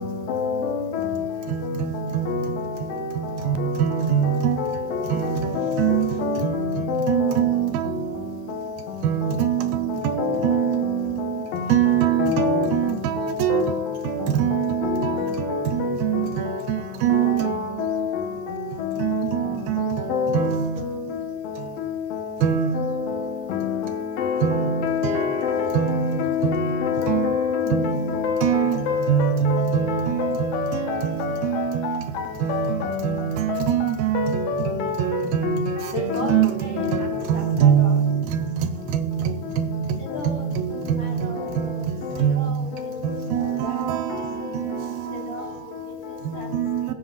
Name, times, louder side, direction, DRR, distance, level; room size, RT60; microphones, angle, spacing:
voice 1, 0.3-1.1 2.3-2.4 2.9-3.0 4.3-4.7 5.2-5.8 6.2-6.5 6.9-7.3 10.2-10.4 12.2-12.6 13.5-13.7 14.8-15.6 17.3-18.0 20.1-20.5 22.8-22.9 23.5-25.1 25.4-32.0 32.5-33.1 33.5-33.6 34.2-34.9 35.4-35.7 36.8-36.9, left 7 dB, 70° left, 2.5 m, -26 dB
voice 2, 1.5-2.6 3.2-4.6 5.1-5.4 5.8-6.1 6.4-7.9 9.0-11.3 11.7-13.6 14.3-15.1 15.7-16.5 17.0-17.5 19.0-20.7 22.4-22.9 24.4-25.3 25.7-26.1 26.4-26.8 27.1-27.2 27.7-28.0 28.4-28.8 29.1-30.7 31.0-32.0 32.4-32.7 33.0-34.3 34.7-35.6 36.0-36.5 37.3-38.6 38.9-39.2 39.6-39.8 40.3-41.2 41.6-41.8 42.2-42.5 43.0-44.0 46.3-46.9, right 10 dB, 80° right, 2.4 m, -23 dB
voice 3, 35.9-38.1 40.0-44.2 45.1-46.9, equal, 50° left, 1.5 m, -37 dB
20.5 x 7.6 x 2.4 m
omnidirectional pair, 4.5 m